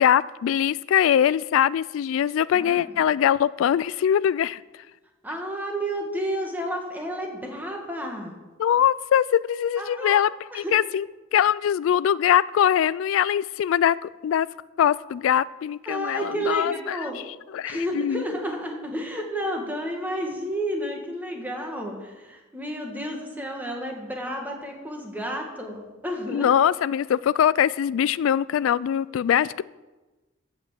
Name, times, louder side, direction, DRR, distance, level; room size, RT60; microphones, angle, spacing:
voice 1, 0.0-4.6 8.6-11.1 11.3-14.5 14.8-17.1 17.5-18.2 26.3-29.6, left 9 dB, 80° left, 18 dB, 0.3 m, -22 dB
voice 2, 2.5-2.9 5.2-8.4 9.8-10.8 15.9-17.2 17.6-26.5, equal, 10° right, 1 dB, 2.0 m, -31 dB
15.0 x 5.9 x 7.5 m, 1.2 s
head